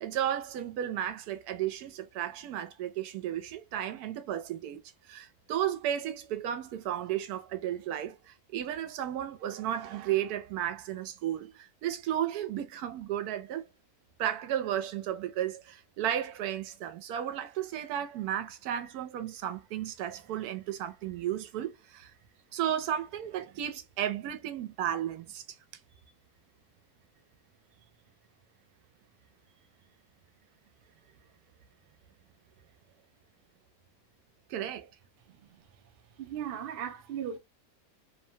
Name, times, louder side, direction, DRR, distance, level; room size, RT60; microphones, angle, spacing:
voice 1, 0.0-13.6 14.2-22.1 22.5-25.6 34.5-34.9, right 11 dB, 90° right, 1.1 m, -34 dB
voice 2, 36.2-37.4, right 9 dB, 65° right, 0.5 m, -36 dB
2.9 x 2.1 x 2.7 m
omnidirectional pair, 1.6 m